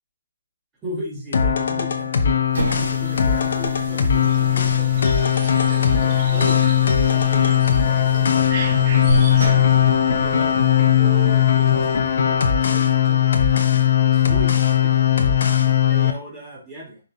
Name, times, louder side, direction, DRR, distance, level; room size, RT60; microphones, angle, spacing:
voice 1, 0.8-2.4 2.7-5.3 5.6-9.7 10.1-13.7 14.1-17.0, right 1 dB, 15° right, -6 dB, 3.5 m, -37 dB
sound 1, 1.3-16.1, left 9 dB, 55° left, 0.9 m, -18 dB
sound 2, 2.4-10.5, right 1 dB, 60° right, 3.1 m, -30 dB
sound 3, 4.2-12.0, right 4 dB, 30° right, 1.5 m, -36 dB
6.2 x 5.8 x 2.8 m, 0.34 s
figure-of-eight pair, 140°, 0 cm